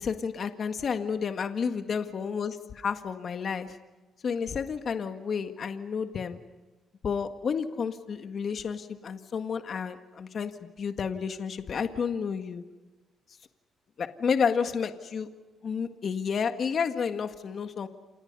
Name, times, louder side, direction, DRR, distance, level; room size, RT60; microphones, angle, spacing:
voice 1, 0.0-3.8 4.2-6.4 7.0-12.6 14.0-15.3 15.6-17.9, left 6 dB, 50° left, 8 dB, 1.7 m, -31 dB
29.5 x 27.5 x 5.5 m, 1.2 s
cardioid pair, 90°, 0 cm